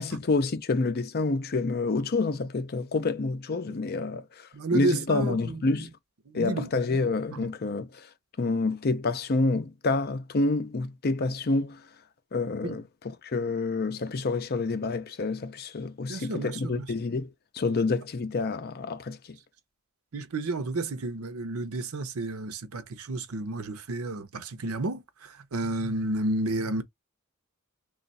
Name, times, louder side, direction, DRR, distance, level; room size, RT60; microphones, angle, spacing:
voice 1, 0.0-5.9 6.3-8.1 8.4-11.8 12.3-12.8 13.2-19.4, left 3 dB, 45° left, 0.5 m, -28 dB
voice 2, 4.5-5.9 6.3-6.7 12.6-12.8 16.1-16.9 20.1-26.8, right 2 dB, 75° right, 0.7 m, -31 dB
3.1 x 2.4 x 4.0 m
head